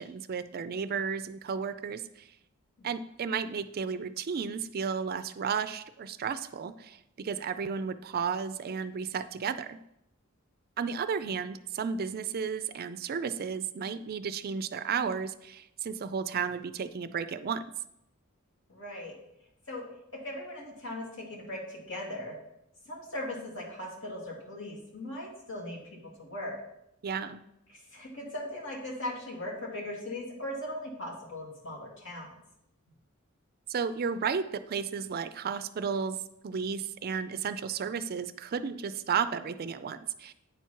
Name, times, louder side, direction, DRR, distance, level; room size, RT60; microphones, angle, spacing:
voice 1, 0.0-2.0 2.8-9.8 10.8-17.6 27.0-27.4 33.7-36.2 36.4-40.3, right 6 dB, 45° right, 12 dB, 0.4 m, -33 dB
voice 2, 18.7-19.1 19.7-22.4 22.9-26.6 27.7-32.3, left 1 dB, 65° left, -3 dB, 2.5 m, -39 dB
9.3 x 4.6 x 5.8 m, 0.82 s
head